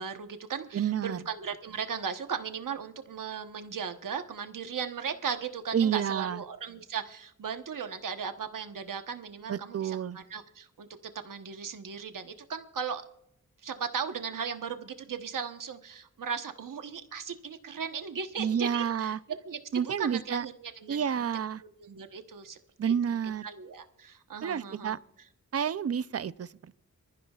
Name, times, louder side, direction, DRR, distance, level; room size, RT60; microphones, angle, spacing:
voice 1, 0.0-13.0 13.6-19.1 19.4-21.2 21.6-22.9 23.2-25.0, right 6 dB, 85° right, 7 dB, 1.1 m, -37 dB
voice 2, 0.7-1.2 5.7-6.4 9.5-10.2 18.4-19.2 19.7-20.4 20.9-21.6 22.8-23.5 24.4-25.0 25.5-26.7, right 8 dB, 50° right, 16 dB, 0.5 m, -29 dB
25.0 x 14.5 x 2.4 m, 0.75 s
wide cardioid pair, 100°, 31 cm